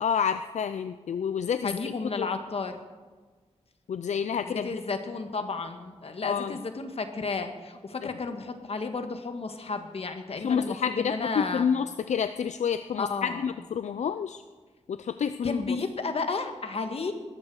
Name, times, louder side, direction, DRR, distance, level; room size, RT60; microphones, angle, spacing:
voice 1, 0.0-1.8 2.2-2.3 3.9-4.7 6.2-6.5 10.4-14.4 14.9-15.6, left 7 dB, 80° left, 11 dB, 0.5 m, -29 dB
voice 2, 1.6-2.8 4.4-11.7 13.0-13.5 15.4-17.1, left 4 dB, 60° left, 7 dB, 1.6 m, -32 dB
20.5 x 14.0 x 4.8 m, 1.4 s
wide cardioid pair, 115°, 12 cm